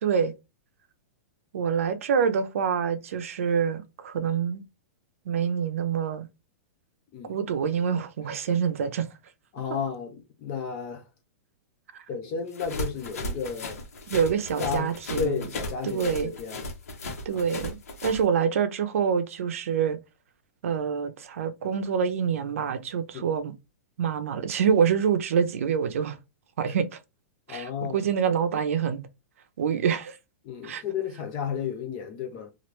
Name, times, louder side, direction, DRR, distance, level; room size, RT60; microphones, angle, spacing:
voice 1, 0.0-0.3 1.5-4.6 5.3-6.3 7.3-9.1 14.1-15.5 15.8-16.3 17.3-20.0 20.6-23.5 24.0-26.2 26.6-27.0 27.5-29.1 29.6-30.2 30.6-30.8, right 7 dB, 65° right, 0.6 m, -26 dB
voice 2, 9.5-11.0 12.1-13.8 14.6-16.7 17.3-17.4 23.1-23.3 27.5-28.0 30.4-32.5, left 6 dB, 25° left, 0.4 m, -33 dB
sound 1, 12.5-18.2, left 1 dB, 85° left, 1.1 m, -35 dB
3.0 x 2.5 x 3.1 m
supercardioid pair, 175°, 8 cm